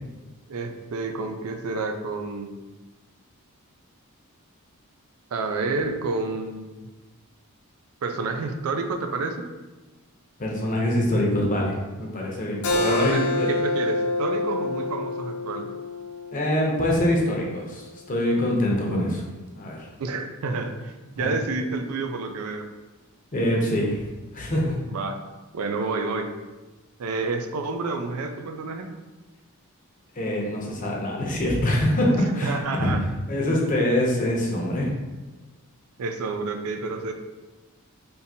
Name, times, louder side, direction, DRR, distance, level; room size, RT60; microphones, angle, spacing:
voice 1, 0.5-2.6 5.3-6.9 8.0-9.5 12.6-15.7 20.0-22.7 24.9-25.2 25.5-26.3 27.0-28.9 32.4-33.0 36.0-37.1, right 3 dB, 80° right, 6 dB, 0.4 m, -29 dB
voice 2, 10.4-13.5 16.3-19.2 19.5-19.9 21.2-21.3 23.3-24.1 24.3-24.8 30.2-32.9 33.3-34.9, left 1 dB, 35° left, -2 dB, 0.7 m, -24 dB
Keyboard (musical), 12.6-17.8, left 2 dB, 75° left, 0.6 m, -28 dB
3.6 x 2.7 x 2.7 m, 1.2 s
head